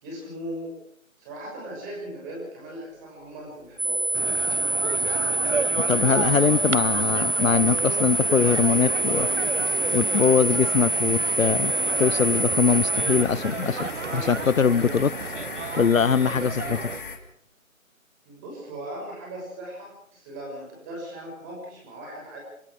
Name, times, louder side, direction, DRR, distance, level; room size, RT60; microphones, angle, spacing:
voice 1, 0.0-0.8 1.2-4.1 18.3-22.4, right 1 dB, 10° right, -1 dB, 6.2 m, -38 dB
sound 1, 3.3-17.2, left 4 dB, 40° left, 2.9 m, -40 dB
sound 2, 3.8-13.2, right 2 dB, 35° right, 0.8 m, -25 dB
sound 3, 4.1-17.0, right 5 dB, 60° right, 1.0 m, -32 dB
voice 2, 5.9-9.3 9.9-11.7 12.0-15.1 15.8-16.9, left 6 dB, 70° left, 21 dB, 0.8 m, -22 dB
27.5 x 21.0 x 4.8 m, 0.68 s
figure-of-eight pair, 165°, 41 cm